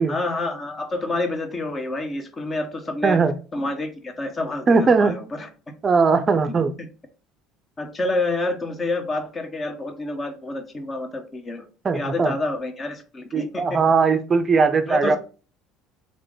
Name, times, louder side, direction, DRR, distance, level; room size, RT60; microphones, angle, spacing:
voice 1, 0.1-3.2 3.5-5.5 6.5-6.9 7.8-11.6 11.9-13.8 14.9-15.2, left 2 dB, 30° left, 1.1 m, -28 dB
voice 2, 3.0-3.3 4.7-5.1 5.8-6.7 11.8-12.3 13.3-15.2, right 4 dB, 30° right, 0.5 m, -19 dB
3.8 x 3.4 x 3.7 m
supercardioid pair, 100°, 0 cm